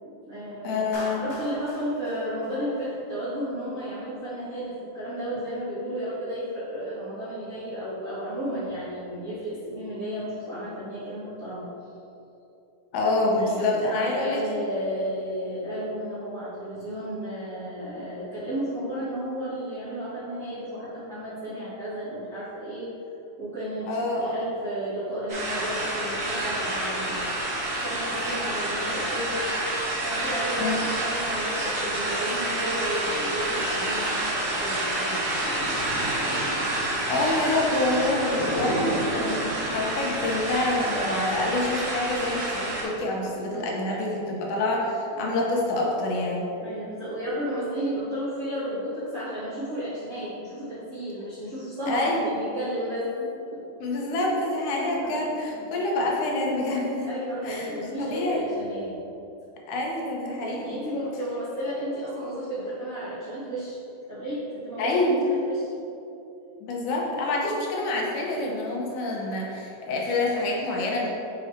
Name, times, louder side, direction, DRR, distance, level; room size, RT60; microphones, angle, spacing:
voice 1, 0.0-11.7 13.5-22.9 23.4-27.2 27.8-29.4 30.0-35.7 38.3-39.0 43.2-44.6 45.1-45.4 46.6-53.1 53.5-53.6 54.7-55.2 55.5-55.6 57.1-58.9 60.4-63.8 64.1-64.9 65.4-65.8 66.5-66.6, equal, 40° right, -13 dB, 1.2 m, -33 dB
voice 2, 0.6-1.2 12.9-14.4 23.9-24.3 30.6-30.7 37.1-46.5 51.9-52.2 53.8-57.1 57.4-57.7 58.0-58.4 59.7-60.8 64.8-65.2 66.6-71.1, left 2 dB, 80° left, -2 dB, 2.3 m, -27 dB
Clapping, 0.9-3.2, left 1 dB, 45° left, 0.9 m, -42 dB
sound 1, 25.3-42.8, right 1 dB, 65° right, 0.7 m, -28 dB
6.4 x 3.8 x 4.3 m, 2.9 s
omnidirectional pair, 3.6 m